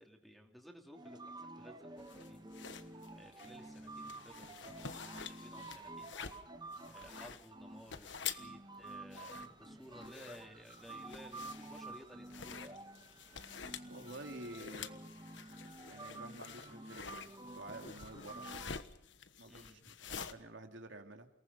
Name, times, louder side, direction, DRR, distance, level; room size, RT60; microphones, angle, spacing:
voice 1, 0.0-1.8 2.1-2.4 2.8-6.2 6.9-12.8 13.2-13.5 19.5-19.8, equal, ahead, 3 dB, 2.8 m, -57 dB
sound 1, 0.9-18.8, right 2 dB, 20° right, 1.4 m, -50 dB
sound 2, 2.0-20.3, left 7 dB, 75° left, 1.3 m, -49 dB
voice 2, 13.8-15.0 15.9-18.5 19.4-21.3, right 2 dB, 80° right, 4 dB, 2.7 m, -50 dB
29.0 x 19.0 x 5.5 m, 0.81 s
head